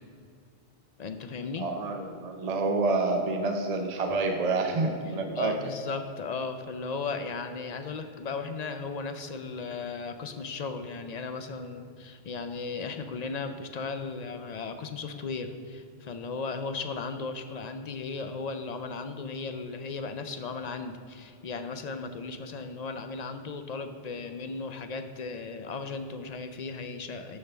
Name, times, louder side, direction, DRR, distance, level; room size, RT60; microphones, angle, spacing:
voice 1, 1.0-1.7 5.3-27.4, left 4 dB, 50° left, 7 dB, 0.5 m, -36 dB
voice 2, 1.6-5.5, right 3 dB, 45° right, 3 dB, 0.7 m, -28 dB
9.6 x 3.5 x 6.8 m, 2.5 s
omnidirectional pair, 1.1 m